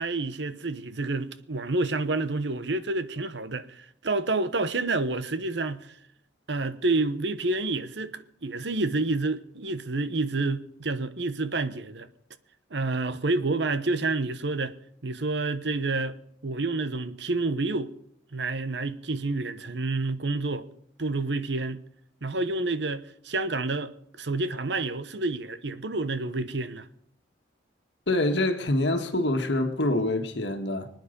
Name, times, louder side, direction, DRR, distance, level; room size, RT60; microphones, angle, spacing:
voice 1, 0.0-5.9 6.5-12.1 12.7-14.8 15.0-17.9 18.3-20.7 21.0-21.8 22.2-26.9, right 3 dB, 70° right, 1.0 m, -29 dB
voice 2, 28.1-30.9, left 1 dB, 70° left, 1.7 m, -25 dB
24.5 x 9.4 x 5.2 m
head